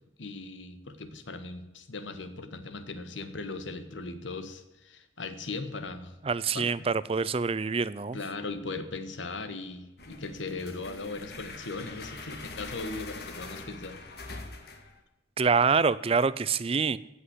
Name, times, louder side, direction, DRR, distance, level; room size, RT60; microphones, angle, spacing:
voice 1, 0.2-6.1 6.5-6.9 8.1-14.0, left 3 dB, 90° left, 10 dB, 1.5 m, -38 dB
voice 2, 6.2-8.2 15.4-17.0, right 5 dB, 30° right, 18 dB, 0.4 m, -26 dB
sound 1, 10.0-15.0, left 3 dB, 55° left, 1.9 m, -43 dB
16.0 x 5.9 x 8.1 m, 0.99 s
head